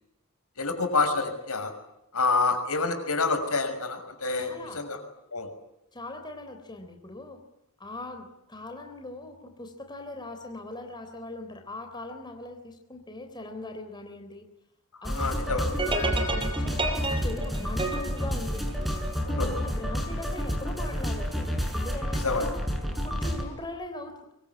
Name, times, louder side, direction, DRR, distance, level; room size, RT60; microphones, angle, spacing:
voice 1, 0.6-1.7 2.1-5.0 5.3-5.5 14.9-15.7 19.3-19.5 22.1-22.5, left 3 dB, 75° left, 7 dB, 6.2 m, -28 dB
voice 2, 4.4-4.8 5.9-7.4 7.8-14.5 15.0-15.3 16.0-18.7 19.4-22.6 23.0-24.3, left 2 dB, 20° left, 4 dB, 3.7 m, -40 dB
sound 1, 15.0-23.4, equal, ahead, 6.7 m, -30 dB
sound 2, 15.8-19.2, right 2 dB, 25° right, 5.6 m, -31 dB
24.5 x 24.0 x 9.8 m, 0.85 s
head